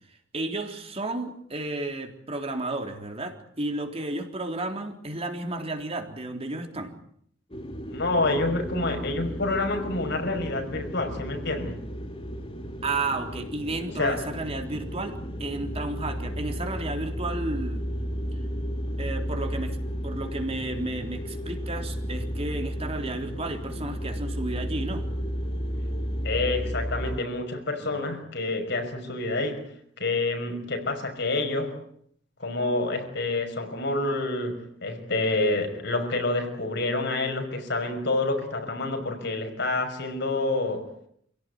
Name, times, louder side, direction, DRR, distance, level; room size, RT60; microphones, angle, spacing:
voice 1, 0.3-6.9 12.8-17.8 19.0-19.8 20.0-25.1 27.9-28.2, right 2 dB, 30° right, 3.7 m, -32 dB
sound 1, 7.5-27.2, equal, 30° left, 2.3 m, -33 dB
voice 2, 7.9-11.8 14.0-14.2 26.2-29.6 30.0-31.7 32.4-40.9, left 2 dB, 60° left, 6.1 m, -28 dB
28.0 x 17.5 x 9.6 m
head